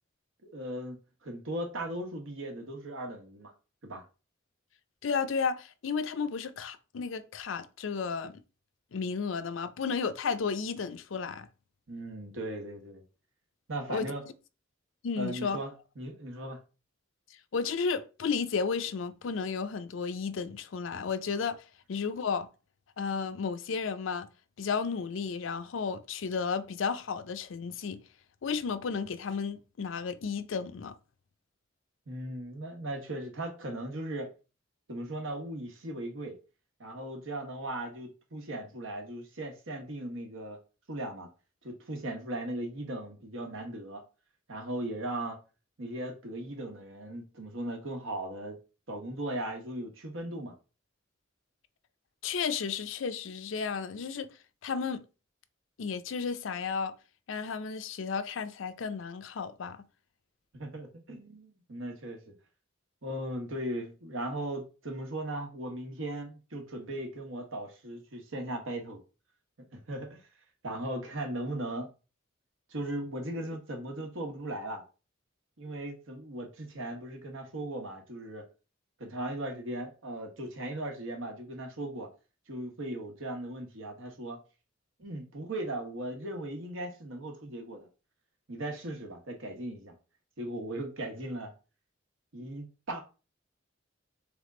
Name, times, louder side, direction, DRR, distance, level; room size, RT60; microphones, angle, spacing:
voice 1, 0.4-1.0 1.2-3.5 3.8-4.0 11.9-13.0 13.7-14.2 15.2-16.6 32.1-34.3 34.9-36.3 36.8-40.6 40.9-41.3 41.6-44.0 44.5-45.4 45.8-48.6 48.9-50.5 60.5-62.3 63.0-69.0 69.7-70.3 70.6-71.9 72.7-74.8 75.6-78.4 79.0-82.1 82.5-84.4 85.0-87.9 88.5-89.9 90.4-91.5 92.3-93.0, right 1 dB, 75° right, 1.2 m, -38 dB
voice 2, 5.0-8.4 8.9-11.5 13.9-14.1 15.0-15.6 17.5-21.6 21.9-22.5 23.0-24.3 24.6-28.0 28.4-30.9 52.2-54.3 54.6-55.0 55.8-56.9 57.3-59.8, left 5 dB, 70° left, 0.5 m, -33 dB
3.6 x 3.5 x 3.7 m
head